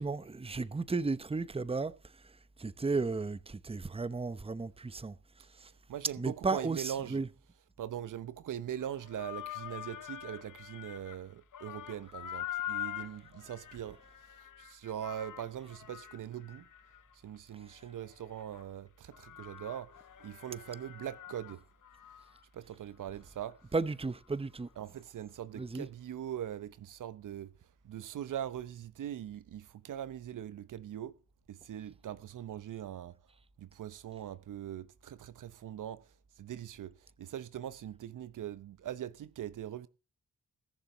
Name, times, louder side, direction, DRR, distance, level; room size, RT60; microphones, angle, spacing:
voice 1, 0.0-1.9 2.6-5.1 5.6-5.7 6.2-7.3 23.7-24.7 25.6-25.9, right 3 dB, 15° right, 0.9 m, -34 dB
voice 2, 5.9-7.2 7.8-14.0 14.6-16.7 17.2-19.9 20.2-21.6 22.5-23.6 24.8-27.5 27.8-31.2 31.5-33.2 33.6-36.0 36.4-39.9, right 10 dB, 65° right, 0.9 m, -41 dB
sound 1, 8.8-11.3 11.5-18.6 19.1-22.4 22.7-22.8 23.4-23.5, left 12 dB, 65° left, 1.2 m, -45 dB
18.0 x 6.9 x 6.1 m
supercardioid pair, 50°, 34 cm